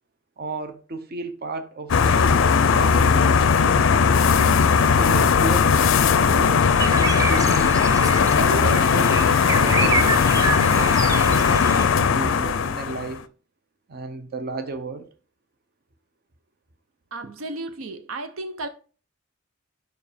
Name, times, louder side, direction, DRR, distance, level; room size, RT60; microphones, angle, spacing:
voice 1, 0.4-3.8 4.9-5.8 6.3-7.8 8.4-13.2 13.9-15.1, right 3 dB, 50° right, 0.7 m, -33 dB
sound 1, 1.9-13.2, left 6 dB, 65° left, 0.4 m, -18 dB
sound 2, 6.8-11.9, right 3 dB, 15° right, 0.4 m, -28 dB
voice 2, 17.1-18.7, right 2 dB, 85° right, 0.7 m, -33 dB
4.8 x 4.6 x 5.0 m
head